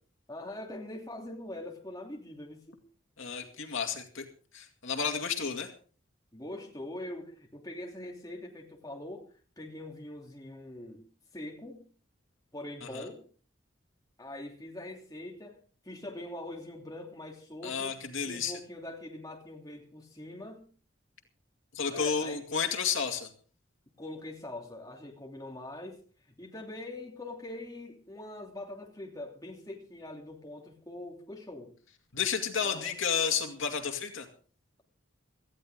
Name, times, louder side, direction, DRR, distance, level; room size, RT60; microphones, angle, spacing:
voice 1, 0.3-2.8 6.3-9.3 9.6-11.1 11.3-11.8 12.5-13.2 14.2-18.0 18.3-20.7 21.9-22.6 24.0-31.7 32.7-33.0, left 1 dB, 20° left, 0 dB, 2.9 m, -43 dB
voice 2, 3.2-4.3 4.5-5.7 12.8-13.1 17.6-18.5 21.7-23.3 32.1-34.3, left 6 dB, 80° left, 5 dB, 2.3 m, -31 dB
18.5 x 14.0 x 3.7 m, 0.41 s
head